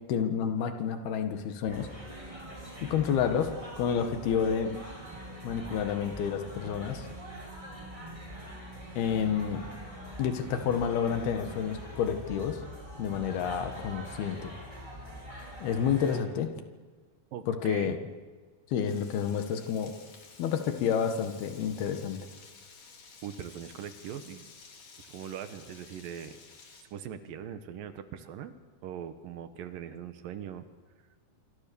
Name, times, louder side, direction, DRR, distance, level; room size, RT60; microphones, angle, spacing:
voice 1, 0.1-1.9 2.8-4.8 5.4-7.1 9.0-9.6 10.2-12.6 13.0-14.5 15.6-16.5 17.5-18.0 18.7-19.9 20.4-22.3, left 7 dB, 85° left, 7 dB, 3.6 m, -29 dB
sound 1, 1.7-16.2, equal, 10° right, 5.4 m, -44 dB
voice 2, 17.3-18.0 23.2-24.4 25.1-26.4 26.9-30.7, right 9 dB, 70° right, 10 dB, 2.7 m, -41 dB
Frying (food), 18.8-26.8, left 4 dB, 60° left, 4.4 m, -53 dB
26.0 x 24.5 x 7.0 m, 1.5 s
omnidirectional pair, 4.4 m